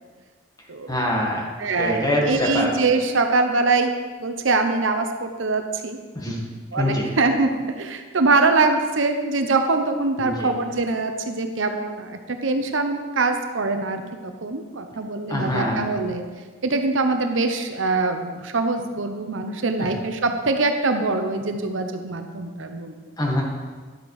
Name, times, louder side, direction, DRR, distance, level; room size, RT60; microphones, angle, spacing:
voice 1, 0.9-1.5 1.8-2.7 6.1-6.4 6.8-7.1 10.2-10.5 15.3-15.9 19.8-19.9 23.2-23.4, left 1 dB, 20° left, -1 dB, 1.7 m, -24 dB
voice 2, 1.6-3.9 4.2-6.0 6.7-7.5 7.8-16.2 16.6-23.0, right 3 dB, 70° right, 6 dB, 0.8 m, -23 dB
11.0 x 7.8 x 4.8 m, 1.5 s
head